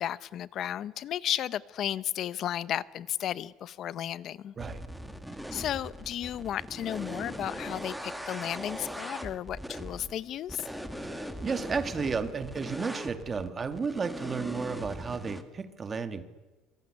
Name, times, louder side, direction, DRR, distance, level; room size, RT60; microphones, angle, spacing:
voice 1, 0.0-4.5 5.5-10.7, left 11 dB, 40° left, 19 dB, 0.8 m, -34 dB
sound 1, 4.6-15.4, equal, ahead, 1.7 m, -40 dB
voice 2, 11.0-16.2, right 5 dB, 20° right, 11 dB, 1.8 m, -33 dB
26.0 x 23.0 x 9.8 m, 1.2 s
cardioid pair, 170°, 0 cm